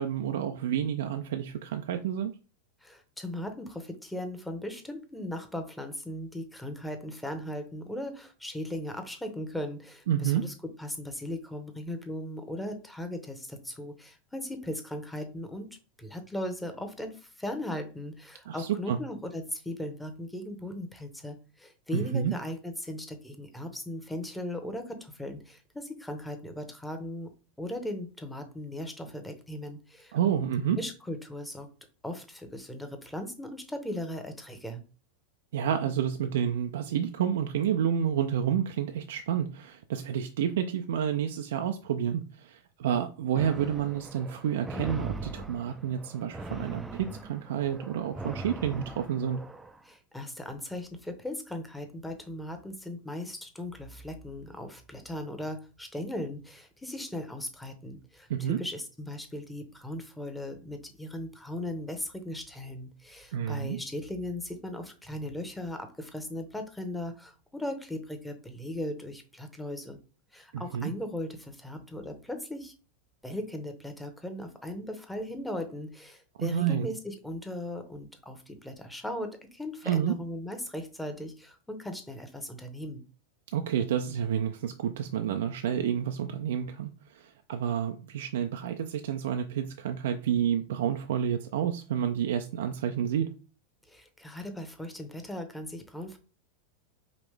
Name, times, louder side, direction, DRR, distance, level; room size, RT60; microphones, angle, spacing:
voice 1, 0.0-2.3 10.1-10.4 18.5-19.0 21.9-22.3 30.1-30.8 35.5-49.4 58.3-58.6 63.3-63.8 70.5-70.9 76.4-76.9 79.8-80.1 83.5-93.3, right 9 dB, 70° right, 6 dB, 0.4 m, -29 dB
voice 2, 2.8-27.3 27.6-30.2 30.7-31.7 32.0-34.8 49.8-70.0 70.3-72.7 73.2-83.0 93.9-96.2, left 1 dB, 5° left, 6 dB, 1.0 m, -38 dB
sound 1, 43.3-49.8, right 2 dB, 10° right, 0.5 m, -40 dB
5.0 x 2.9 x 3.3 m, 0.34 s
hypercardioid pair, 95°, 0 cm